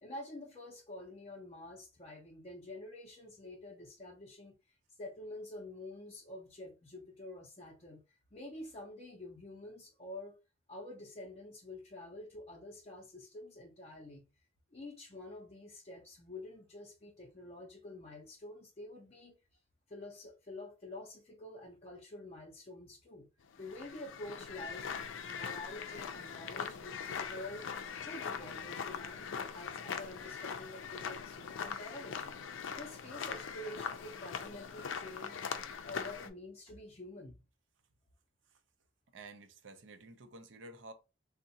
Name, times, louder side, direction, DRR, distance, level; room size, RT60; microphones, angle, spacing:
voice 1, 0.0-10.4 10.7-14.3 14.7-19.4 19.9-23.3 23.6-24.9 25.2-27.7 28.0-32.4 32.7-35.4 35.8-37.4, left 1 dB, 35° left, 0.5 m, -48 dB
sound 1, 23.5-36.3, left 6 dB, 85° left, 0.4 m, -41 dB
voice 2, 39.1-40.9, right 2 dB, 80° right, 0.5 m, -51 dB
3.6 x 2.1 x 2.7 m
head